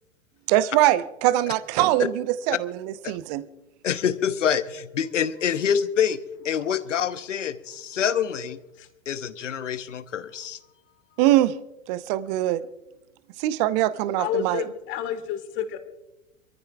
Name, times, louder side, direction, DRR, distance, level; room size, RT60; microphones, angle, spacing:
voice 1, 0.5-3.4 11.2-11.6 11.9-12.6 13.4-14.6, right 14 dB, 30° right, 0.7 m, -22 dB
voice 2, 3.8-6.2 6.4-8.6 9.1-10.6, left 8 dB, 65° left, 1.0 m, -26 dB
voice 3, 14.2-15.8, left 9 dB, 30° left, 1.6 m, -30 dB
26.5 x 14.5 x 2.4 m
figure-of-eight pair, 105°, 39 cm